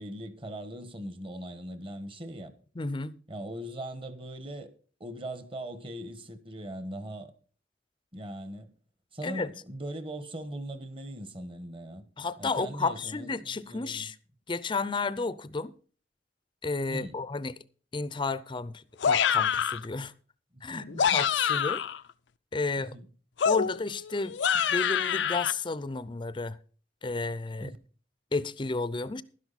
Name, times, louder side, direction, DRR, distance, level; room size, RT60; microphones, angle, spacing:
voice 1, 0.0-2.5 3.3-4.7 5.0-7.3 8.1-8.7 9.1-12.0 12.4-14.1 16.9-17.2 20.5-21.2 22.8-23.1 27.6-27.8, right 1 dB, 30° right, 1.3 m, -40 dB
voice 2, 2.8-3.1 9.2-9.5 12.2-14.1 14.5-15.7 16.6-17.5 17.9-20.1 20.6-21.8 22.5-22.9 23.5-24.4 24.7-26.6 27.0-27.7 28.3-29.2, left 3 dB, 25° left, 0.5 m, -32 dB
sound 1, 19.0-19.9 20.8-22.0 23.4-25.5, left 7 dB, 90° left, 0.5 m, -26 dB
12.0 x 10.5 x 4.1 m
head